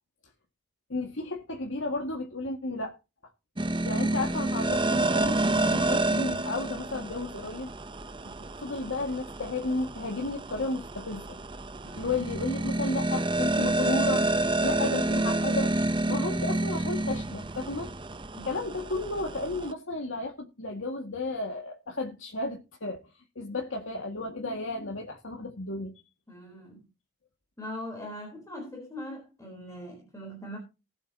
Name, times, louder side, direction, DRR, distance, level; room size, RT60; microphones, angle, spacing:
voice 1, 0.9-3.0 3.8-7.7 8.6-11.4 12.0-15.7 16.1-17.9 18.4-23.0 23.4-25.9, left 2 dB, 90° left, 1.9 m, -33 dB
sound 1, 3.6-19.7, right 2 dB, 25° right, 0.7 m, -29 dB
voice 2, 26.3-26.8 27.6-30.6, left 1 dB, 15° left, 3.8 m, -41 dB
19.5 x 8.1 x 2.8 m
head